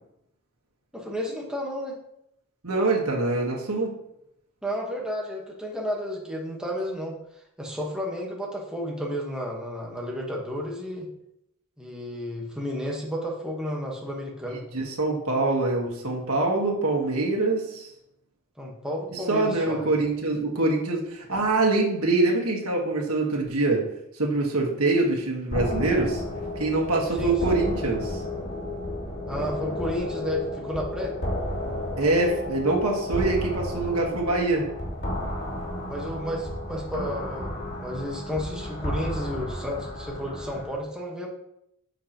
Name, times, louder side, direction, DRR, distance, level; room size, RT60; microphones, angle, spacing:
voice 1, 0.9-2.0 4.6-7.1 7.6-11.1 11.8-14.6 18.6-19.9 27.2-27.3 29.3-31.1 35.9-41.3, equal, 5° right, -2 dB, 1.5 m, -32 dB
voice 2, 2.6-3.9 14.7-17.9 19.1-23.8 24.1-26.2 26.6-28.2 32.0-34.7, right 2 dB, 80° right, -1 dB, 1.6 m, -24 dB
sound 1, 25.5-40.7, left 1 dB, 50° left, 3.3 m, -32 dB
9.5 x 5.8 x 3.1 m, 0.79 s
head